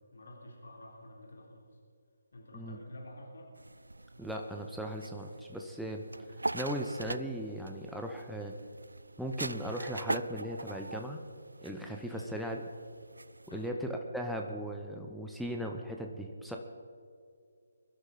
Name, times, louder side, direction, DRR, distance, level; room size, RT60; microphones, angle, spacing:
voice 1, 0.1-1.7 2.3-3.5 12.1-12.4 13.5-13.8, left 1 dB, 65° left, 0 dB, 3.4 m, -49 dB
sound 1, 3.6-13.7, right 2 dB, 85° right, 0.3 m, -42 dB
voice 2, 4.2-6.0 6.5-8.5 9.2-11.2 11.6-12.6 13.5-16.6, equal, ahead, 1 dB, 0.9 m, -37 dB
23.0 x 12.0 x 4.2 m, 2.3 s
figure-of-eight pair, 145°, 0 cm